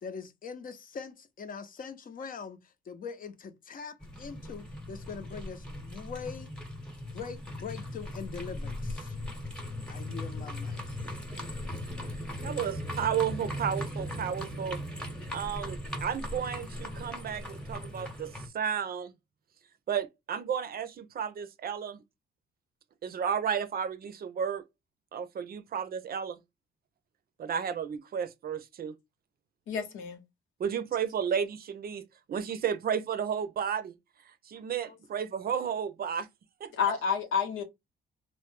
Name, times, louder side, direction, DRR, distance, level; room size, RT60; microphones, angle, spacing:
voice 1, 0.0-6.5 7.1-9.2 9.9-10.8, left 5 dB, 45° left, 0.7 m, -42 dB
sound 1, 4.0-18.5, left 1 dB, 5° left, 0.9 m, -38 dB
voice 2, 12.1-14.8 15.3-19.1 19.9-22.0 23.0-24.6 25.1-26.4 27.4-28.9 30.6-33.9 34.5-36.3 36.6-36.7, right 8 dB, 50° right, 0.5 m, -33 dB
voice 3, 29.7-30.2 36.7-37.6, left 6 dB, 85° left, 0.9 m, -29 dB
3.2 x 2.2 x 3.1 m
cardioid pair, 90°, 20 cm